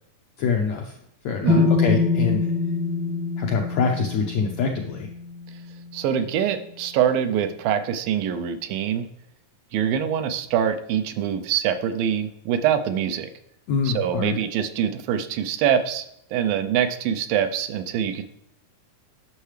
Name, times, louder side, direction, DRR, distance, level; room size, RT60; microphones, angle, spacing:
voice 1, 0.4-0.9 1.2-2.5 3.4-5.1 13.7-14.4, left 5 dB, 85° left, 2 dB, 1.6 m, -25 dB
sound 1, 1.5-5.4, left 4 dB, 20° right, 0.7 m, -24 dB
voice 2, 5.9-9.1 9.7-13.3 13.8-16.1 16.3-18.2, right 9 dB, 80° right, 9 dB, 2.3 m, -24 dB
10.0 x 6.4 x 3.2 m, 0.77 s
omnidirectional pair, 4.2 m